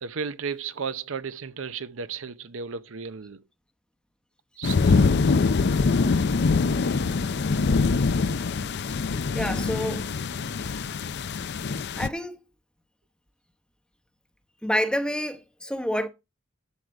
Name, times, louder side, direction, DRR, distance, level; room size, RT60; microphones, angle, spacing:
voice 1, 0.0-3.4 4.6-5.0, right 6 dB, 70° right, 0.7 m, -34 dB
sound 1, 4.6-12.1, left 4 dB, 55° left, 0.5 m, -24 dB
voice 2, 9.3-10.1 10.7-10.8 12.0-12.4 14.6-16.1, equal, 5° left, 0.9 m, -28 dB
11.5 x 6.6 x 4.6 m
head